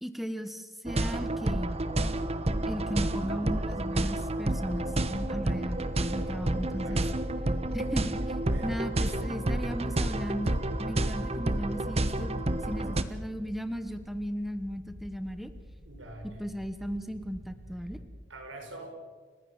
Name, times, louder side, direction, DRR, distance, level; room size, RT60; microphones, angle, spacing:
voice 1, 0.0-1.8 2.7-7.0 7.7-8.4 8.6-12.4 12.7-15.5 16.4-18.0, equal, ahead, 9 dB, 1.2 m, -36 dB
sound 1, 0.9-13.0, right 1 dB, 35° right, 1.1 m, -30 dB
sound 2, 3.6-18.0, equal, 40° left, 7.4 m, -52 dB
voice 2, 6.2-6.5 6.8-7.2 8.5-8.7 15.9-16.4 18.3-19.0, right 1 dB, 85° right, 3 dB, 5.5 m, -45 dB
30.0 x 16.0 x 7.2 m, 1.5 s
head